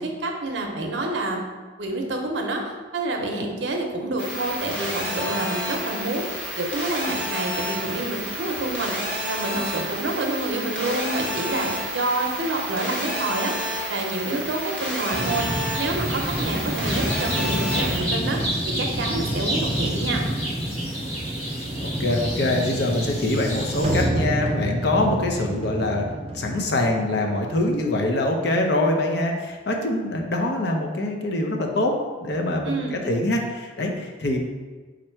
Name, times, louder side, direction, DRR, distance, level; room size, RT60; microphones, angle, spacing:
voice 1, 0.0-1.5 1.8-2.6 2.9-20.3 32.6-33.0, right 2 dB, 70° right, 2 dB, 0.6 m, -28 dB
sound 1, 4.2-18.0, equal, 5° left, 1.0 m, -30 dB
sound 2, 15.1-24.0, right 1 dB, 35° left, 1.1 m, -27 dB
voice 2, 21.8-26.1 26.3-34.5, left 1 dB, 60° left, 2 dB, 0.6 m, -24 dB
sound 3, 23.8-27.8, right 1 dB, 30° right, 0.5 m, -28 dB
4.3 x 2.6 x 4.4 m, 1.3 s
head